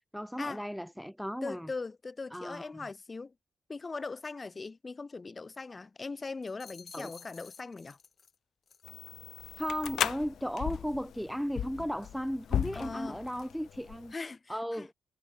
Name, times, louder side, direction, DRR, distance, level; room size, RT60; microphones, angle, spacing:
voice 1, 0.1-1.7 2.3-2.7 6.9-7.1 9.6-14.1 14.5-14.9, equal, ahead, 0.8 m, -35 dB
voice 2, 1.4-3.3 3.7-8.0 12.7-13.2 14.1-14.9, left 3 dB, 30° left, 2.5 m, -40 dB
sound 1, 6.4-8.4 8.7-9.0, left 6 dB, 50° left, 4.1 m, -53 dB
sound 2, 8.8-14.1, left 10 dB, 80° left, 0.4 m, -36 dB
cardioid pair, 105°, 0 cm